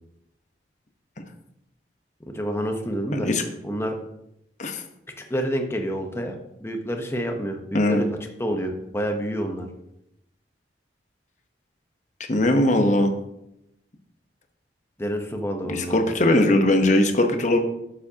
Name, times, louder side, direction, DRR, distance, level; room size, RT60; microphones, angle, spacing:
voice 1, 2.3-3.3 3.6-3.9 5.2-8.1 8.4-9.7 15.0-16.0, equal, 15° left, 3 dB, 1.0 m, -28 dB
voice 2, 3.1-3.4 4.6-4.8 7.7-8.0 12.3-13.1 15.7-17.6, left 1 dB, 40° left, 5 dB, 1.1 m, -20 dB
11.5 x 7.3 x 2.9 m, 0.83 s
head